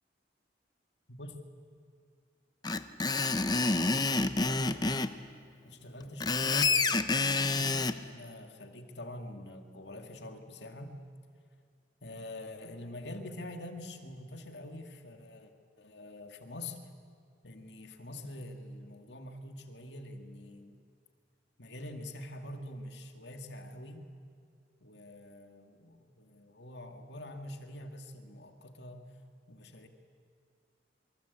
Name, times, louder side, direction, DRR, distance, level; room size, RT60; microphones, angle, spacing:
Screech, 2.6-5.1 6.0-8.0, left 3 dB, 20° left, 0.8 m, -28 dB
voice 1, 3.9-4.8 5.6-10.9 12.0-15.5 15.8-16.8 17.4-20.8 21.6-24.0 24.8-29.1 29.5-29.9, left 1 dB, 75° left, 5 dB, 2.3 m, -45 dB
27.0 x 24.0 x 8.5 m, 2.2 s
head